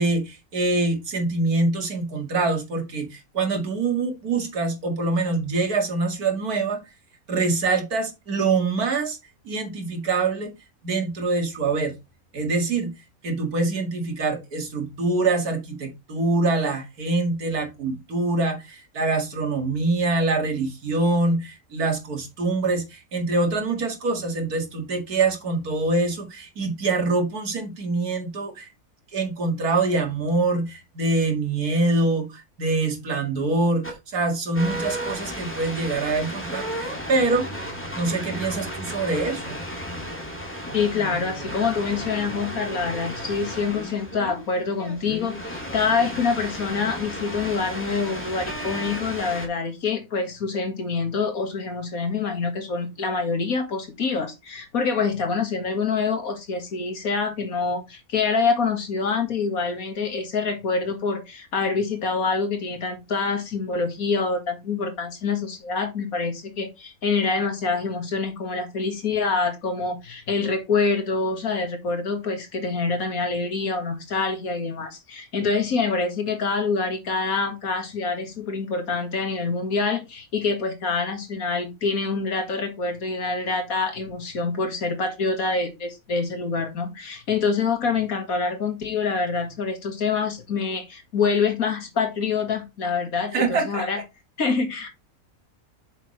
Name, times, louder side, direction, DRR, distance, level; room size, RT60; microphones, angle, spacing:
voice 1, 0.0-6.8 7.3-9.2 9.5-10.5 10.8-12.0 12.3-12.9 13.2-28.7 29.1-33.8 34.1-37.5 37.9-39.6 93.3-93.8, right 3 dB, 90° right, 2.5 m, -24 dB
sound 1, 33.8-33.9 34.5-49.5, equal, 10° left, 2.2 m, -34 dB
voice 2, 40.7-94.0 94.4-94.9, left 4 dB, 70° left, 2.2 m, -26 dB
8.3 x 6.7 x 3.2 m
omnidirectional pair, 1.6 m